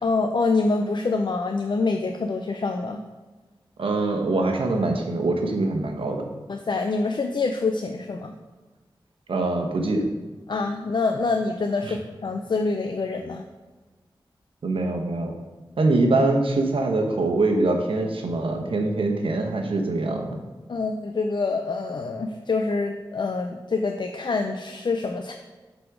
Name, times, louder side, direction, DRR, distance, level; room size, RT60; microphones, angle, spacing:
voice 1, 0.0-3.0 6.5-8.3 10.5-13.4 20.7-25.3, left 3 dB, 60° left, 5 dB, 0.5 m, -26 dB
voice 2, 3.8-6.2 9.3-10.0 11.9-12.0 14.6-15.3 15.8-20.4, right 2 dB, 85° right, 3 dB, 1.0 m, -23 dB
7.8 x 4.1 x 5.0 m, 1.3 s
cardioid pair, 55°, 9 cm